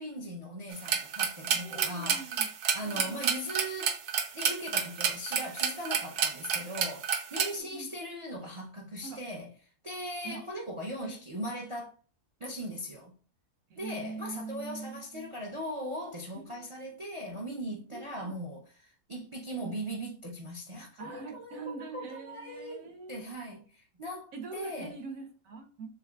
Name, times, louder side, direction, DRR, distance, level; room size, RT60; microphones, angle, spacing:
voice 1, 0.0-2.3 2.7-4.0 4.3-9.5 9.8-11.9 12.4-13.1 13.8-25.0, equal, 45° right, 0.4 m, -39 dB
sound 1, 0.7-7.5, right 7 dB, 85° right, 1.3 m, -29 dB
voice 2, 1.6-2.5 2.8-3.3 7.5-7.9 9.0-9.2 10.2-10.4 13.7-15.3 16.5-16.6 17.9-18.3 19.6-19.8 21.0-23.3 24.3-25.9, right 4 dB, 65° right, 1.4 m, -43 dB
6.7 x 2.5 x 2.3 m
omnidirectional pair, 1.6 m